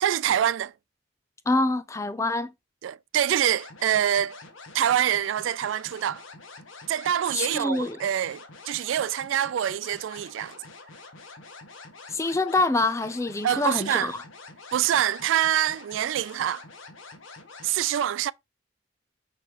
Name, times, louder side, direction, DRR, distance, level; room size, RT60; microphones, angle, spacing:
voice 1, 0.0-0.7 2.8-4.4 4.7-6.2 6.9-10.6 13.4-14.1 14.7-16.6 17.6-18.3, right 10 dB, 75° right, 0.3 m, -25 dB
voice 2, 1.5-2.5 7.3-8.0 12.1-14.1, left 2 dB, 15° left, 0.5 m, -25 dB
sound 1, 3.5-17.7, left 3 dB, 85° left, 1.7 m, -46 dB
6.0 x 5.4 x 3.0 m
head